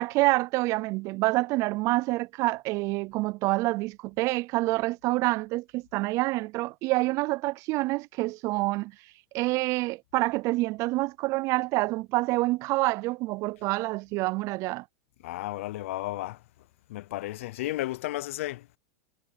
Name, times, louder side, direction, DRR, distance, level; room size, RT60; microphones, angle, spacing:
voice 1, 0.0-8.9 9.3-14.8, right 21 dB, 45° right, 0.4 m, -27 dB
voice 2, 15.2-16.4 16.9-18.7, left 16 dB, 70° left, 0.6 m, -33 dB
hypercardioid pair, 120°, 7 cm